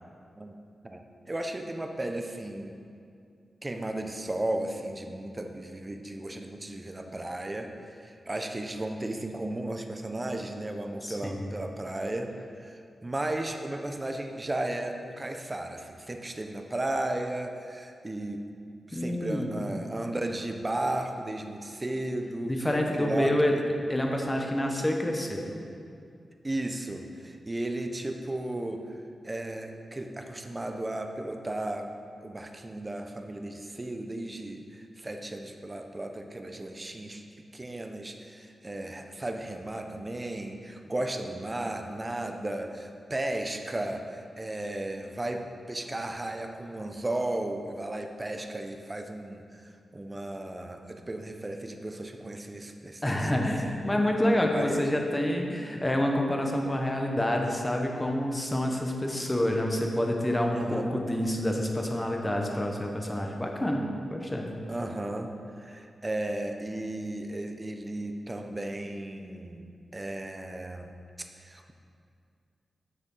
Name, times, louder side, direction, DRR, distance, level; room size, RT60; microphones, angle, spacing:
voice 1, 0.8-2.8 3.6-18.5 18.9-22.6 22.9-23.4 26.4-29.0 29.2-31.9 32.2-37.2 37.5-53.8 54.5-54.8 60.5-60.9 64.7-70.9 71.2-71.7, right 1 dB, 20° right, 5 dB, 0.6 m, -35 dB
voice 2, 11.0-11.5 18.9-19.7 22.4-23.5 23.9-25.5 53.0-64.5, left 1 dB, 15° left, 1 dB, 1.0 m, -28 dB
10.0 x 6.6 x 3.8 m, 2.4 s
wide cardioid pair, 120°, 0 cm